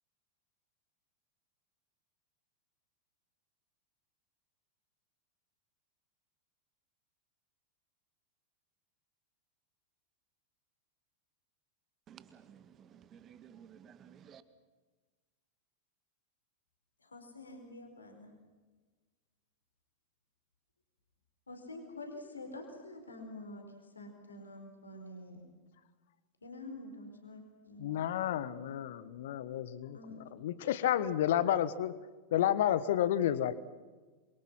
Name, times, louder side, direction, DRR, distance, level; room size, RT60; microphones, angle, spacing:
voice 1, 12.1-14.4, right 8 dB, 30° right, 1.7 m, -55 dB
voice 2, 17.0-18.3 21.5-25.4 26.4-28.0 29.9-30.2, left 2 dB, 75° left, 4.5 m, -47 dB
voice 3, 27.8-31.9 32.3-33.5, left 11 dB, 55° left, 1.4 m, -31 dB
27.5 x 23.5 x 5.8 m
figure-of-eight pair, 90°, 0 cm